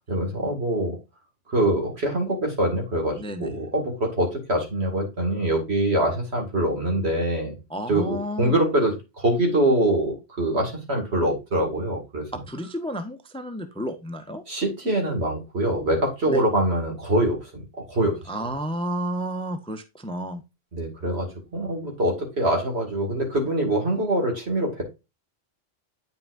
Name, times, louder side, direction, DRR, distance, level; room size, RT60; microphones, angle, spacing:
voice 1, 0.1-1.0 1.5-7.5 7.9-12.2 14.5-18.2 20.7-24.8, right 1 dB, 65° right, 2 dB, 2.6 m, -24 dB
voice 2, 3.1-3.5 7.7-8.6 12.3-14.4 16.3-16.4 18.3-20.4, equal, 5° left, 8 dB, 0.7 m, -31 dB
8.8 x 5.7 x 2.5 m, 0.26 s
omnidirectional pair, 1.2 m